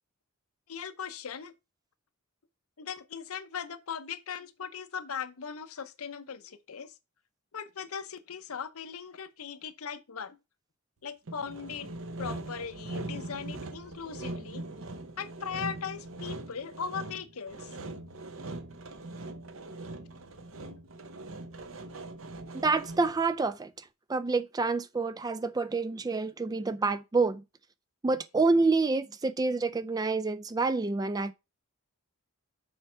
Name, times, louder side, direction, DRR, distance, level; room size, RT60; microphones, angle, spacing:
voice 1, 0.7-1.5 2.8-6.9 7.5-10.4 11.0-11.9 12.2-14.7 15.2-17.7 31.0-31.1, left 7 dB, 75° left, 0.7 m, -39 dB
Sawing, 11.3-23.3, right 2 dB, 60° right, 0.8 m, -41 dB
voice 2, 22.5-23.7 24.1-27.4 28.0-31.3, right 3 dB, 15° right, 0.3 m, -28 dB
7.2 x 4.7 x 4.4 m
head